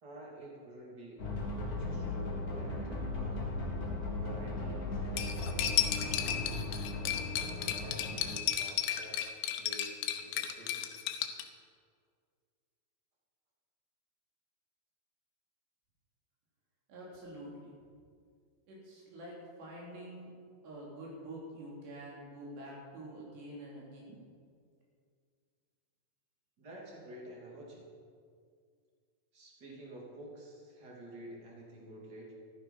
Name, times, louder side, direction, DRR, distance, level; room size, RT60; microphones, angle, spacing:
voice 1, 0.0-3.4 4.1-6.5 7.0-9.3 9.6-10.9 26.6-27.9 29.3-32.3, right 1 dB, 25° right, -3 dB, 2.9 m, -50 dB
sound 1, 1.2-8.4, left 2 dB, 55° left, 1.0 m, -37 dB
Cutlery silverware, 5.2-11.4, left 10 dB, 80° left, 2.9 m, -34 dB
voice 2, 16.9-17.7 18.7-20.3 20.6-24.2, right 1 dB, 75° right, -4 dB, 5.7 m, -47 dB
14.5 x 12.5 x 5.8 m, 2.1 s
omnidirectional pair, 4.9 m